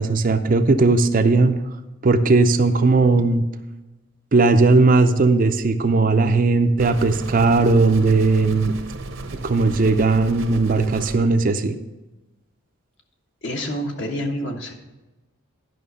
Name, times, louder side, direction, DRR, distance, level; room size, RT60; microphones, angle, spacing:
voice 1, 0.0-1.6 2.0-3.4 4.3-8.7 9.4-11.7, right 3 dB, 40° right, 8 dB, 0.5 m, -17 dB
sound 1, 6.8-11.2, right 2 dB, 65° right, 0.8 m, -34 dB
voice 2, 13.4-14.7, equal, 55° left, 2 dB, 1.4 m, -27 dB
11.0 x 5.9 x 5.5 m, 1.1 s
head